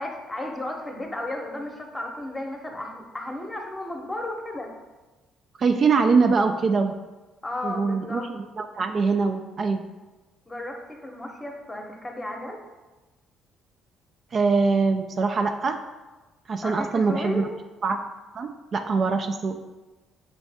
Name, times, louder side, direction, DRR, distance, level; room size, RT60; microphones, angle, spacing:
voice 1, 0.0-4.7 7.4-8.3 10.5-12.6 16.6-17.5, left 1 dB, 15° left, 2 dB, 0.8 m, -34 dB
voice 2, 5.6-6.9 7.6-8.2 8.6-9.8 14.3-15.8 16.5-17.5 17.8-18.0 18.4-19.6, right 4 dB, 50° right, 5 dB, 0.3 m, -23 dB
5.3 x 2.5 x 3.4 m, 1.2 s
supercardioid pair, 75°, 0 cm